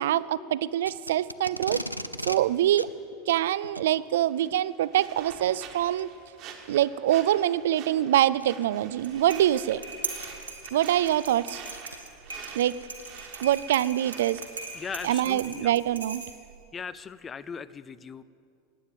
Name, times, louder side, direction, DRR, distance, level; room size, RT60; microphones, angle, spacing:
voice 1, 0.0-1.8 2.3-2.9 3.3-6.1 6.7-9.8 10.7-11.6 12.5-12.8 13.4-14.4 15.0-16.2, right 12 dB, 60° right, 19 dB, 0.3 m, -24 dB
Packing tape duct tape, 0.8-2.4 2.7-2.9 3.6-3.9 5.0-5.3 6.0-6.1 6.7-6.8 8.4-8.7 9.7-9.8 10.2-10.3 10.8-14.7, equal, 90° left, 0.4 m, -39 dB
sound 1, 4.3-15.0, right 7 dB, 45° right, 1.5 m, -47 dB
sound 2, 8.9-16.6, right 4 dB, 80° right, 1.6 m, -40 dB
voice 2, 14.7-15.7 16.7-18.2, left 6 dB, 20° left, 17 dB, 0.4 m, -38 dB
17.0 x 9.5 x 7.5 m, 2.4 s
figure-of-eight pair, 85°, 0 cm